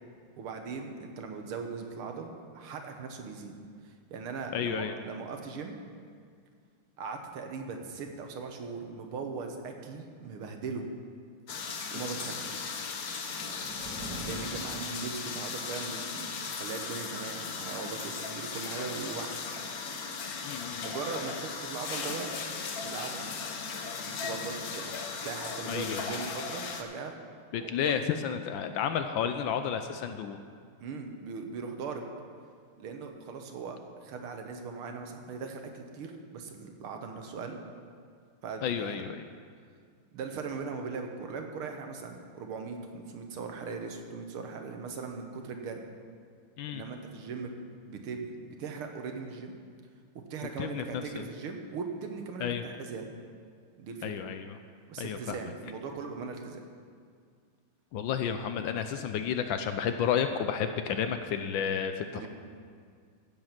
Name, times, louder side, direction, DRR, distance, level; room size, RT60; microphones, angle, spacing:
voice 1, 0.4-3.5 3.8-5.8 7.0-10.9 11.9-12.6 14.3-19.4 20.8-22.3 22.8-23.2 24.0-24.9 25.2-27.1 30.8-32.1 32.8-37.6 38.4-39.0 40.1-45.8 46.7-47.5 47.9-49.5 50.3-53.1 53.7-54.1 54.9-56.6 62.1-62.3, right 5 dB, 75° right, 4 dB, 2.0 m, -39 dB
voice 2, 4.5-4.9 20.4-21.0 25.7-26.1 27.5-30.4 38.6-39.3 46.6-46.8 50.6-50.8 51.1-51.3 52.4-52.6 54.0-54.6 55.0-55.4 57.9-62.3, left 8 dB, 75° left, 8 dB, 1.2 m, -31 dB
sound 1, 11.5-26.8, left 5 dB, 55° left, 1.2 m, -37 dB
sound 2, 12.8-15.6, right 1 dB, 50° right, 1.9 m, -44 dB
15.5 x 7.5 x 5.9 m, 2.1 s
omnidirectional pair, 2.4 m